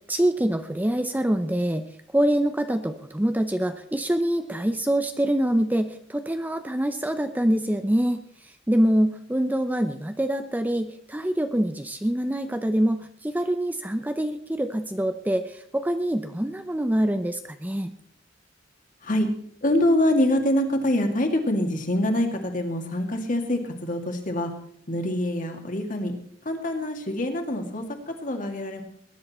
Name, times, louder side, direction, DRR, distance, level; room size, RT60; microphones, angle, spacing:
voice 1, 0.1-17.9, right 1 dB, 10° right, 8 dB, 0.6 m, -25 dB
voice 2, 19.6-24.5 24.9-26.1 26.4-28.8, left 1 dB, 45° left, 4 dB, 2.3 m, -25 dB
20.0 x 10.5 x 4.3 m, 0.63 s
head